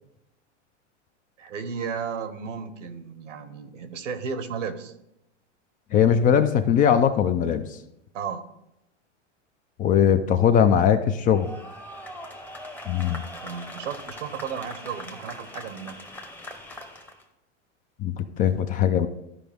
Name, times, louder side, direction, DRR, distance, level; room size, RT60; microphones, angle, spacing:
voice 1, 1.4-4.9 8.1-8.4 13.4-16.0, right 6 dB, 85° right, 11 dB, 1.1 m, -34 dB
voice 2, 5.9-7.7 9.8-11.5 12.9-13.2 18.0-19.1, left 8 dB, 25° left, 10 dB, 0.4 m, -20 dB
sound 1, 11.3-17.2, equal, 5° left, 0.8 m, -41 dB
13.0 x 5.0 x 3.5 m, 0.85 s
hypercardioid pair, 120°, 36 cm